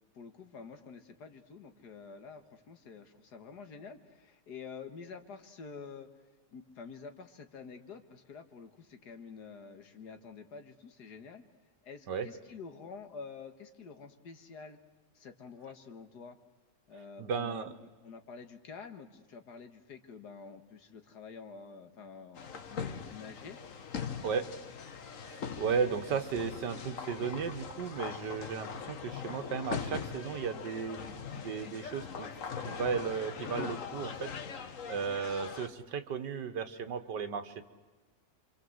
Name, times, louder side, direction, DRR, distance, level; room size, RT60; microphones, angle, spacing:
voice 1, 0.1-6.1 6.5-11.4 11.8-14.8 15.2-16.4 16.9-17.7 18.0-23.6, left 5 dB, 70° left, 7 dB, 2.1 m, -48 dB
voice 2, 17.2-17.7 24.2-24.5 25.2-32.3 32.6-37.6, right 6 dB, 85° right, 9 dB, 1.9 m, -35 dB
sound 1, 22.4-35.7, left 6 dB, 50° left, 1.5 m, -41 dB
27.5 x 25.0 x 7.9 m, 1.3 s
omnidirectional pair, 1.8 m